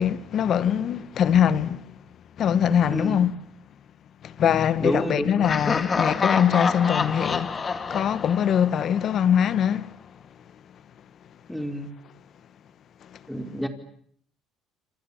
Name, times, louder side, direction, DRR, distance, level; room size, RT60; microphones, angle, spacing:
voice 1, 0.0-1.9 2.4-3.4 4.2-9.9, left 9 dB, 55° left, 1.6 m, -22 dB
voice 2, 2.9-3.2 4.8-5.7 11.5-11.9 13.3-13.7, equal, 5° left, 4.7 m, -29 dB
Laughter, 5.4-9.3, left 5 dB, 30° left, 2.2 m, -27 dB
28.5 x 26.5 x 7.4 m
cardioid pair, 100°, 0 cm